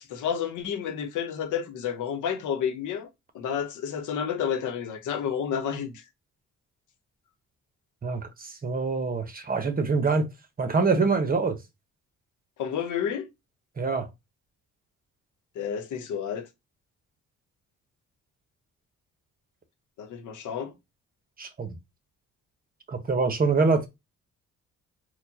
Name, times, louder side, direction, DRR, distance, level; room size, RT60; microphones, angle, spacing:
voice 1, 0.0-3.1 3.3-5.9 12.6-13.3 15.6-16.4 20.0-20.7, left 8 dB, 80° left, 0.9 m, -30 dB
voice 2, 8.0-10.3 10.6-11.6 13.8-14.1 21.4-21.8 22.9-23.9, right 4 dB, 30° right, 1.0 m, -25 dB
4.4 x 2.3 x 2.8 m
cardioid pair, 90°, 30 cm